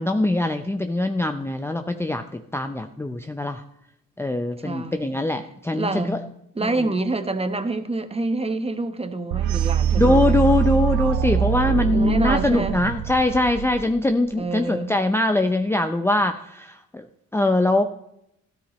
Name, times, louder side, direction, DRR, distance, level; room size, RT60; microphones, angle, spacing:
voice 1, 0.0-2.2 2.5-3.6 4.2-6.2 6.6-6.7 10.0-17.0 17.3-17.8, left 2 dB, 10° left, 0.6 m, -22 dB
voice 2, 4.6-5.2 5.7-6.2 6.5-10.4 11.9-12.8 14.4-14.9, right 2 dB, 20° right, 1.2 m, -27 dB
sound 1, 9.3-14.2, right 9 dB, 80° right, 0.6 m, -23 dB
13.0 x 12.5 x 3.1 m
cardioid pair, 90°, 30 cm